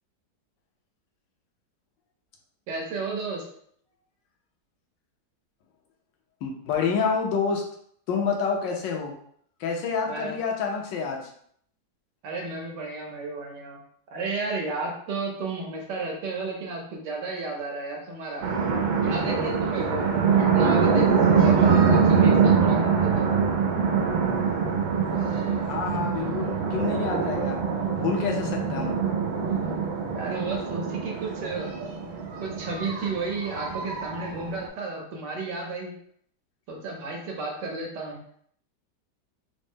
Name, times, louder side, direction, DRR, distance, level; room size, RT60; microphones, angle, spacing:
voice 1, 2.7-3.4 10.0-10.3 12.2-13.8 14.1-18.5 19.0-20.0 20.4-23.3 30.1-31.7 32.0-32.1 32.4-35.9 36.7-38.2, right 3 dB, 70° right, -1 dB, 1.4 m, -33 dB
voice 2, 6.4-7.7 8.1-9.1 9.6-11.3 25.6-27.6 27.9-29.0, left 5 dB, 75° left, 1 dB, 1.3 m, -28 dB
sound 1, 18.4-34.7, right 5 dB, 85° right, 1.4 m, -24 dB
3.9 x 2.0 x 3.5 m, 0.64 s
omnidirectional pair, 2.1 m